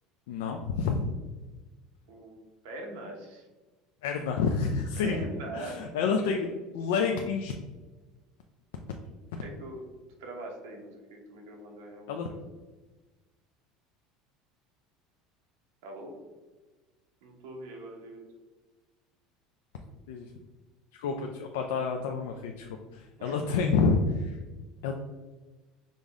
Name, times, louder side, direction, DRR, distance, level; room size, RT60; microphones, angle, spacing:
voice 1, 0.3-1.1 4.0-5.2 5.5-7.5 9.3-9.4 12.1-12.3 20.1-20.3 20.9-24.4 24.8-24.9, left 5 dB, 90° left, 3 dB, 0.3 m, -29 dB
voice 2, 2.6-3.4 5.0-5.8 9.4-9.8 10.2-12.2 15.8-16.1 17.2-18.2 23.2-23.4, right 2 dB, 85° right, 1 dB, 1.0 m, -42 dB
5.1 x 2.1 x 3.5 m, 1.2 s
supercardioid pair, 135°, 0 cm